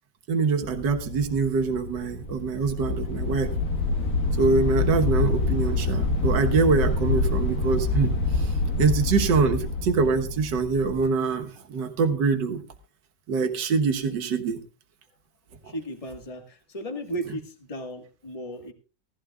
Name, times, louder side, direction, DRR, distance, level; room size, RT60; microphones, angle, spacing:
voice 1, 0.3-3.5 4.4-8.5 8.8-12.6 13.3-14.6, right 4 dB, 80° right, 5 dB, 1.8 m, -24 dB
sound 1, 0.6-11.1, left 3 dB, 60° left, 1.9 m, -26 dB
voice 2, 15.6-18.7, right 1 dB, 20° left, 4 dB, 1.5 m, -35 dB
17.0 x 15.0 x 2.3 m, 0.34 s
omnidirectional pair, 1.9 m